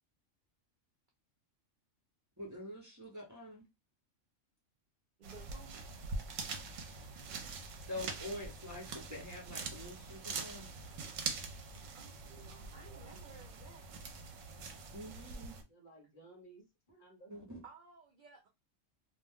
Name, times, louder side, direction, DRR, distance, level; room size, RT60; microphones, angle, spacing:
voice 1, 2.4-3.6 7.9-10.7 14.9-15.6 17.3-17.6, left 1 dB, 15° right, 0.7 m, -46 dB
voice 2, 5.2-5.8 11.9-12.1 12.7-13.8 17.6-18.5, right 4 dB, 60° right, 0.5 m, -56 dB
sound 1, 5.2-15.6, right 4 dB, 80° right, 1.0 m, -44 dB
voice 3, 12.2-13.3 15.6-17.4, right 3 dB, 45° left, 0.9 m, -59 dB
2.4 x 2.1 x 3.4 m
omnidirectional pair, 1.3 m